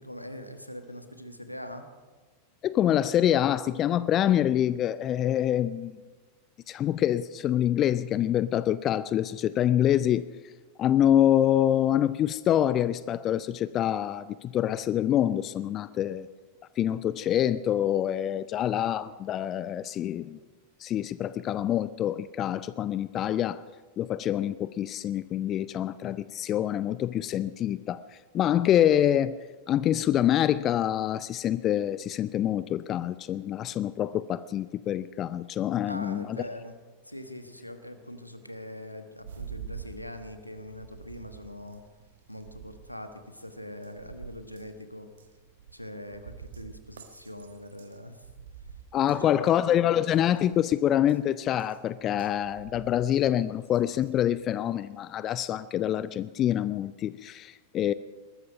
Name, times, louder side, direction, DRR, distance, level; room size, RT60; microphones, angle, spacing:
voice 1, 0.0-1.9 35.8-36.8 37.0-41.8 42.3-45.1 45.7-48.2 49.0-49.6, left 1 dB, 90° left, 7 dB, 1.3 m, -42 dB
voice 2, 2.6-5.9 6.7-10.2 10.8-16.3 16.8-20.4 20.8-23.6 24.0-28.0 28.3-29.4 29.7-36.4 48.9-57.9, left 11 dB, 30° left, 17 dB, 0.4 m, -26 dB
sound 1, 39.2-55.0, right 7 dB, 65° right, 1.3 m, -48 dB
20.0 x 14.0 x 5.1 m, 1.4 s
figure-of-eight pair, 90°, 0 cm